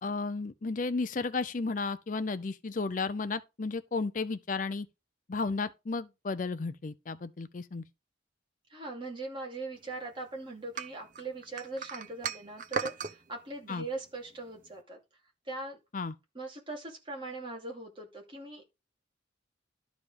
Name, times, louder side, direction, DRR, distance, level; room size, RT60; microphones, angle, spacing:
voice 1, 0.0-4.9 5.3-7.8 13.7-13.9 15.9-16.1, left 4 dB, 40° left, 0.5 m, -33 dB
voice 2, 8.7-15.0 15.4-15.8 16.3-18.8, right 2 dB, 25° right, 2.7 m, -40 dB
sound 1, 10.8-13.2, right 5 dB, 40° right, 0.8 m, -36 dB
12.0 x 5.0 x 5.1 m
head